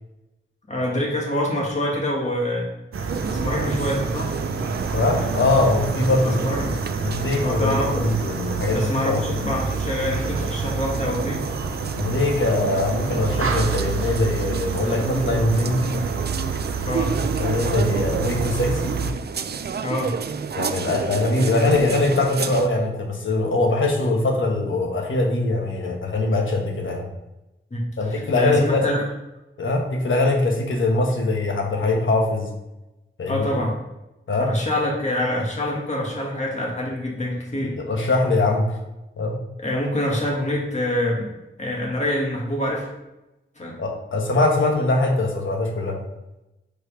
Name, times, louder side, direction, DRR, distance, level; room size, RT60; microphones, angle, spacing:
voice 1, 0.7-2.7 3.3-4.3 6.2-6.8 7.4-8.1 8.7-11.4 16.9-17.2 19.8-20.2 27.7-29.0 33.3-33.8 34.4-37.8 39.6-41.3 41.6-42.9 43.6-43.8, left 1 dB, 35° left, -2 dB, 2.0 m, -26 dB
sound 1, 2.9-19.1, right 4 dB, 85° right, 0.7 m, -28 dB
sound 2, 3.1-22.7, right 6 dB, 50° right, 0.4 m, -31 dB
voice 2, 4.9-6.4 7.0-9.2 12.0-15.9 17.4-19.0 20.6-27.1 28.0-28.9 29.6-32.5 33.2-33.6 34.3-34.5 37.8-38.8 39.2-39.4 43.8-46.0, left 2 dB, 70° left, 1 dB, 1.3 m, -22 dB
5.2 x 4.6 x 5.0 m, 0.98 s
wide cardioid pair, 90°, 21 cm